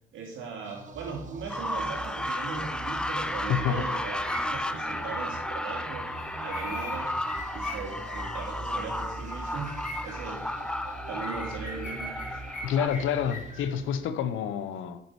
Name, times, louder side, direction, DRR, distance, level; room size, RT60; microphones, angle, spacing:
voice 1, 0.1-6.1 6.4-7.1 7.5-10.4 11.1-12.4, right 5 dB, 80° right, 2.2 m, -39 dB
sound 1, 0.6-14.3, right 2 dB, 40° right, 1.2 m, -43 dB
sound 2, 1.5-12.9, left 1 dB, 5° left, 0.4 m, -33 dB
voice 2, 3.5-3.8 12.6-15.0, left 8 dB, 80° left, 0.7 m, -28 dB
sound 3, 4.0-4.7 6.1-8.5 9.0-9.1 9.4-10.2 11.2-13.7, left 2 dB, 40° left, 2.4 m, -41 dB
7.6 x 5.5 x 4.7 m
cardioid pair, 90°, 20 cm